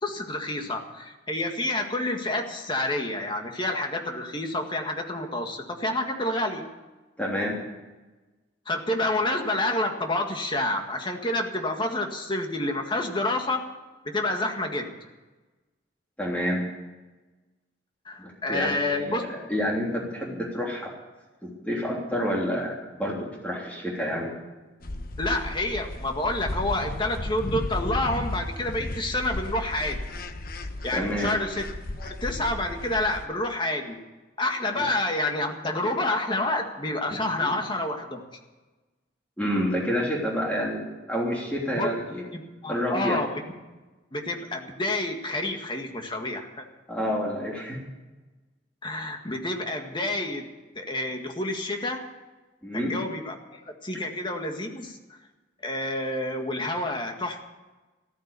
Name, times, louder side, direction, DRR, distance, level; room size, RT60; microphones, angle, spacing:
voice 1, 0.0-6.7 8.7-13.7 14.1-14.9 18.1-19.2 25.2-30.0 30.8-31.7 32.0-34.0 34.4-38.2 41.7-41.9 42.3-43.3 44.1-46.6 48.8-50.5 50.8-52.1 52.7-55.0 55.6-57.4, left 1 dB, 25° left, 3 dB, 1.9 m, -28 dB
voice 2, 7.2-7.5 16.2-16.6 18.2-20.9 21.4-24.3 30.9-31.3 34.7-34.8 37.4-37.5 39.4-42.2 42.7-43.2 46.9-47.8 52.6-53.0, equal, 10° left, -3 dB, 3.2 m, -29 dB
sound 1, 24.8-33.3, left 1 dB, 50° left, 1.1 m, -34 dB
14.5 x 14.0 x 6.9 m, 1.2 s
head